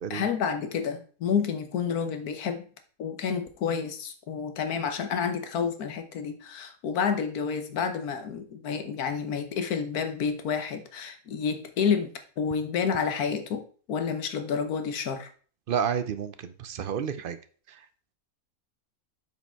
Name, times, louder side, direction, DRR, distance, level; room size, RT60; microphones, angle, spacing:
voice 1, 0.1-2.6 3.0-13.6 13.9-15.3, left 6 dB, 85° left, 8 dB, 1.5 m, -29 dB
voice 2, 15.7-17.4, right 7 dB, 60° right, 12 dB, 0.6 m, -30 dB
8.1 x 4.9 x 4.5 m, 0.41 s
omnidirectional pair, 1.6 m